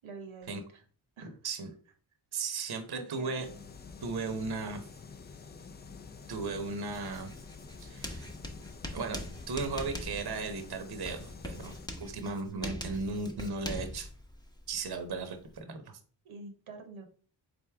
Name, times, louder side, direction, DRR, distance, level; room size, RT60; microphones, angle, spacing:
voice 1, 0.0-0.8 1.2-1.4 2.9-3.5 16.2-17.0, right 3 dB, 75° right, 5 dB, 1.0 m, -46 dB
voice 2, 2.3-3.5 4.0-4.8 6.3-7.3 7.8-8.3 8.9-14.1 14.7-15.8, right 4 dB, 50° right, 6 dB, 0.9 m, -36 dB
Utility room rear, 3.4-11.9, left 5 dB, 25° left, 0.3 m, -48 dB
Writing, 6.9-15.6, left 1 dB, 10° left, 0.8 m, -43 dB
3.9 x 3.5 x 3.4 m, 0.44 s
cardioid pair, 55°, 48 cm